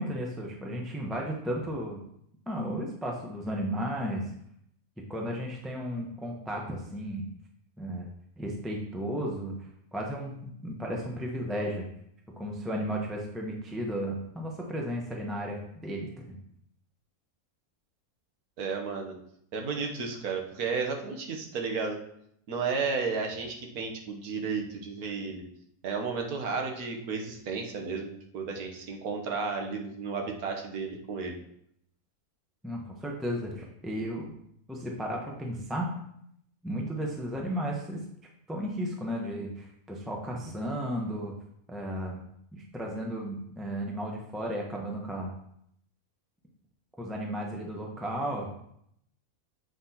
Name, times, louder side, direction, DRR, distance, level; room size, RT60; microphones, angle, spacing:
voice 1, 0.0-2.0 2.5-4.2 5.1-7.3 7.8-8.1 8.4-9.6 9.9-11.9 12.4-16.4 32.6-34.4 34.7-35.9 36.6-38.0 38.5-41.3 41.7-45.3 47.0-48.5, equal, ahead, -1 dB, 0.7 m, -34 dB
voice 2, 18.6-19.2 19.5-22.0 22.5-25.4 25.8-31.4, right 5 dB, 80° right, 2 dB, 1.4 m, -33 dB
7.8 x 5.8 x 2.9 m, 0.72 s
omnidirectional pair, 1.6 m